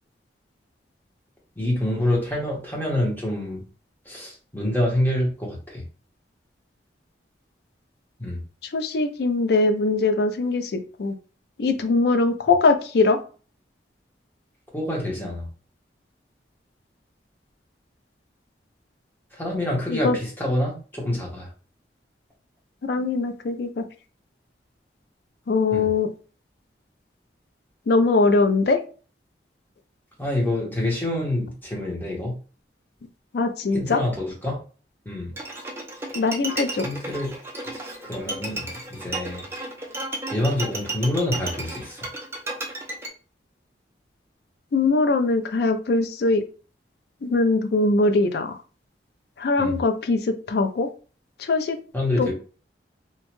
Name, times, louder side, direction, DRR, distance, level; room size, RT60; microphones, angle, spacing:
voice 1, 1.6-3.6 4.1-5.8 8.2-8.4 14.7-15.5 19.3-21.5 25.7-25.9 30.2-32.3 33.7-34.6 35.0-35.3 36.8-37.4 38.0-39.4 40.3-42.0 49.6-49.8 51.9-52.3, left 1 dB, 10° left, -2 dB, 0.9 m, -26 dB
voice 2, 8.7-10.7 11.0-11.1 11.6-13.2 19.9-20.2 22.8-23.8 25.5-26.1 27.9-28.8 33.3-34.0 36.1-36.9 44.7-46.4 47.2-48.5 49.4-50.9 51.4-51.8 52.2-52.3, left 3 dB, 60° left, 8 dB, 0.4 m, -21 dB
Bowed string instrument, 35.4-43.1, right 2 dB, 15° right, 0.5 m, -33 dB
2.7 x 2.2 x 3.0 m, 0.37 s
head